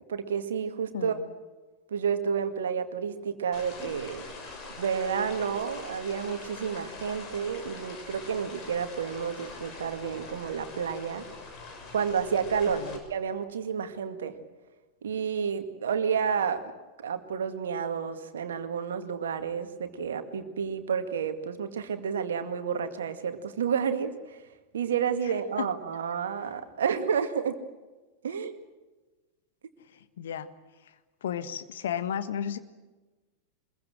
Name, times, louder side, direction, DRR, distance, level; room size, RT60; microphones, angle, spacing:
voice 1, 0.1-1.2 1.9-4.2 4.8-11.3 11.9-14.3 15.0-16.6 17.0-24.5 24.7-27.6 28.2-28.6, right 7 dB, 65° right, 8 dB, 2.0 m, -30 dB
voice 2, 0.9-1.3 12.7-13.0 25.6-25.7 30.2-30.5 31.2-32.6, left 9 dB, 60° left, 10 dB, 1.5 m, -33 dB
sound 1, 3.5-13.0, left 3 dB, 40° left, 6.5 m, -43 dB
25.5 x 22.0 x 7.7 m, 1.2 s
figure-of-eight pair, 90°, 0 cm